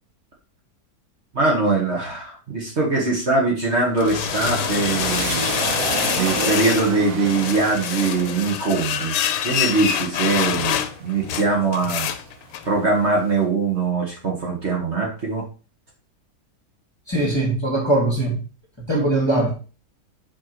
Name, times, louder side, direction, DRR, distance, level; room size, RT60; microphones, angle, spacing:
voice 1, 1.3-5.4 6.1-9.2 9.4-12.1 12.6-15.4, right 3 dB, 45° right, 1.7 m, -22 dB
sound 1, 3.7-7.0 7.2-12.7, left 10 dB, 85° left, 1.2 m, -26 dB
sound 2, 4.3-11.9 12.4-13.2, right 3 dB, 60° right, 1.3 m, -31 dB
voice 2, 17.1-18.4 18.8-19.5, right 2 dB, 15° left, 1.7 m, -21 dB
5.0 x 4.7 x 4.5 m
omnidirectional pair, 1.8 m